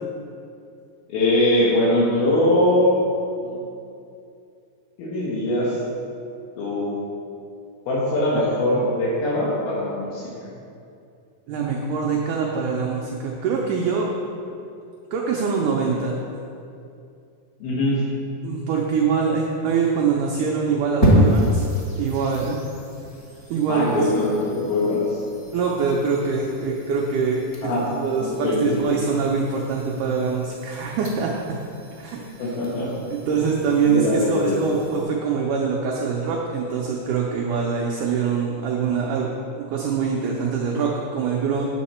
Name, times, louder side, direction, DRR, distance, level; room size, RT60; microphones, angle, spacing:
voice 1, 1.1-3.0 3.4-3.6 5.0-5.8 6.6-6.9 7.9-10.5 17.6-18.0 23.7-25.2 27.6-27.8 28.2-28.8 32.4-33.0 33.9-34.6, left 1 dB, 80° left, -7 dB, 3.3 m, -22 dB
voice 2, 11.5-14.1 15.1-16.2 18.4-21.6 22.0-22.6 23.5-24.0 25.5-27.7 28.0-31.6 32.0-32.5 33.1-39.3 39.5-41.6, right 5 dB, 75° right, -1 dB, 1.9 m, -24 dB
sound 1, 21.0-35.0, equal, 20° left, 0.7 m, -28 dB
8.5 x 8.1 x 4.3 m, 2.6 s
omnidirectional pair, 4.3 m